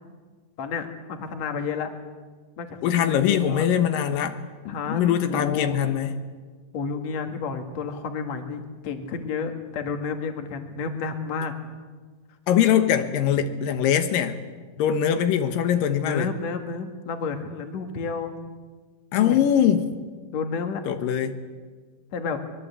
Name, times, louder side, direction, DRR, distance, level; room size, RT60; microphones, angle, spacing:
voice 1, 0.6-1.9 2.6-3.6 4.7-5.8 6.7-11.5 16.0-18.3 19.1-19.4 20.3-20.8 22.1-22.4, left 5 dB, 55° left, 6 dB, 2.9 m, -31 dB
voice 2, 2.8-4.4 4.7-6.1 12.5-14.4 14.8-16.3 19.1-19.9 20.9-21.4, left 9 dB, 85° left, 8 dB, 2.9 m, -22 dB
23.5 x 21.5 x 8.3 m, 1.4 s
omnidirectional pair, 3.8 m